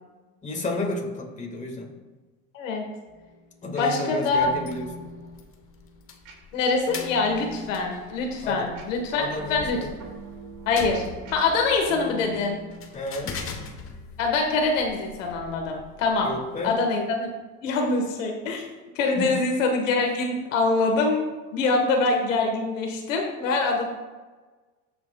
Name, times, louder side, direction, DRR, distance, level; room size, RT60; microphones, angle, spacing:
voice 1, 0.4-1.9 3.6-4.9 8.4-8.7 9.1-9.9 12.9-13.4 16.2-16.8 19.2-19.3, left 2 dB, 20° left, 1 dB, 1.8 m, -31 dB
voice 2, 2.5-2.9 3.8-4.5 6.5-9.2 9.5-9.9 10.7-11.0 11.3-12.6 14.2-16.3 16.6-17.3 17.6-18.6 18.9-21.2 21.5-23.9, left 3 dB, 90° left, 2 dB, 1.5 m, -24 dB
sound 1, 3.1-13.7, equal, 55° right, 2.3 m, -44 dB
sound 2, 4.3-16.7, left 5 dB, 35° left, 1.1 m, -42 dB
17.0 x 6.0 x 2.3 m, 1.3 s
supercardioid pair, 110°, 37 cm